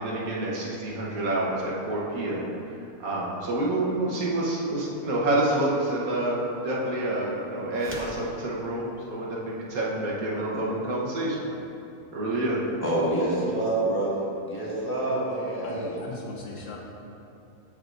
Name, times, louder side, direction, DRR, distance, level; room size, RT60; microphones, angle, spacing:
voice 1, 0.0-11.5 12.1-12.6, right 1 dB, 75° right, -5 dB, 1.7 m, -28 dB
sound 1, 7.7-8.3, right 1 dB, 15° right, 0.5 m, -39 dB
voice 2, 12.8-15.9, right 1 dB, 15° left, -8 dB, 1.6 m, -27 dB
voice 3, 15.6-16.8, left 3 dB, 65° left, -1 dB, 1.0 m, -39 dB
13.5 x 4.7 x 2.6 m, 2.8 s
omnidirectional pair, 1.5 m